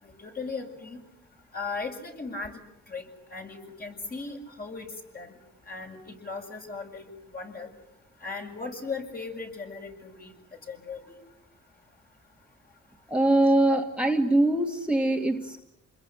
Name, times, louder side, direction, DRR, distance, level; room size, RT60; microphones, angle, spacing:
voice 1, 0.0-1.0 1.5-2.6 2.9-3.0 3.3-5.3 5.7-7.1 7.3-7.7 8.2-10.3 10.7-11.2, left 4 dB, 30° left, 2 dB, 7.4 m, -37 dB
voice 2, 13.1-15.6, right 1 dB, 5° right, 1 dB, 2.3 m, -23 dB
28.5 x 21.5 x 9.2 m, 0.83 s
cardioid pair, 90°, 30 cm